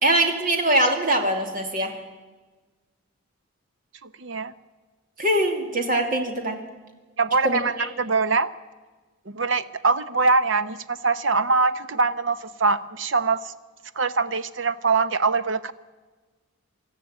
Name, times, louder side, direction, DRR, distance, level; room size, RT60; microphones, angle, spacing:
voice 1, 0.0-1.9 5.2-6.6 7.4-7.6, right 1 dB, 40° right, 3 dB, 2.6 m, -22 dB
voice 2, 4.0-4.5 7.2-8.5 9.3-13.5 14.0-15.7, right 4 dB, 60° right, 12 dB, 0.9 m, -23 dB
25.5 x 13.5 x 8.9 m, 1.3 s
head